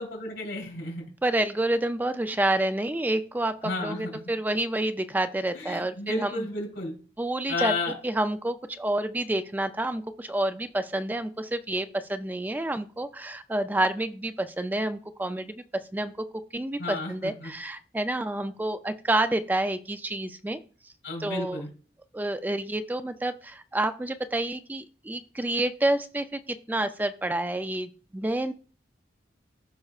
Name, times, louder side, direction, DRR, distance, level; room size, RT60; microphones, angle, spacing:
voice 1, 0.0-1.0 3.6-4.1 5.5-6.9 7.5-7.9 16.8-17.5 21.0-21.7, left 2 dB, 85° left, 1 dB, 3.6 m, -32 dB
voice 2, 1.2-6.5 7.2-7.7 8.0-15.6 15.9-16.3 16.5-20.6 21.2-21.6 22.1-26.4 26.7-28.5, right 1 dB, 10° right, 10 dB, 0.3 m, -28 dB
14.5 x 5.4 x 2.4 m, 0.39 s
head